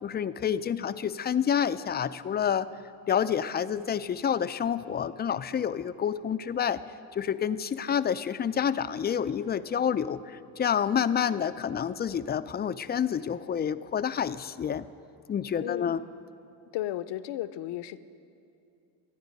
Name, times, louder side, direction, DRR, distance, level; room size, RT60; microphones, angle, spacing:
voice 1, 0.0-2.7 3.1-6.8 7.1-14.9 15.3-16.0, left 8 dB, 25° left, 13 dB, 0.4 m, -28 dB
voice 2, 15.6-16.0 16.7-18.0, left 13 dB, 65° left, 15 dB, 0.7 m, -34 dB
26.5 x 9.6 x 5.3 m, 2.7 s
supercardioid pair, 90°, 45 cm